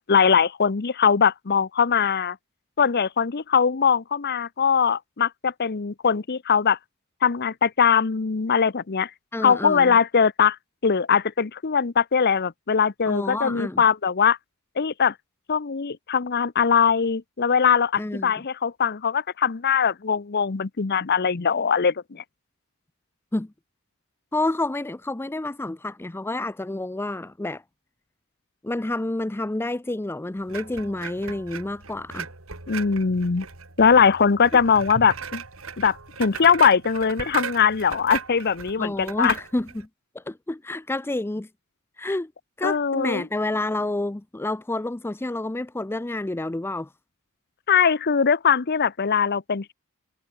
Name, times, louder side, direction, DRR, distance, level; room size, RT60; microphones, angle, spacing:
voice 1, 0.0-2.4 2.8-6.8 7.2-9.1 9.4-10.6 10.8-14.4 14.8-15.1 15.5-22.2 32.7-33.5 33.8-35.4 35.8-39.3 42.6-43.3 47.7-49.7, left 6 dB, 50° left, 0.7 m, -21 dB
voice 2, 9.3-10.0 13.1-13.8 18.0-18.3 23.3-23.5 24.3-27.6 28.6-32.3 34.5-34.6 38.8-39.9 40.1-41.5 42.0-42.3 42.6-46.9, left 2 dB, 10° left, 0.4 m, -29 dB
sound 1, 30.5-39.9, right 5 dB, 65° right, 2.9 m, -36 dB
head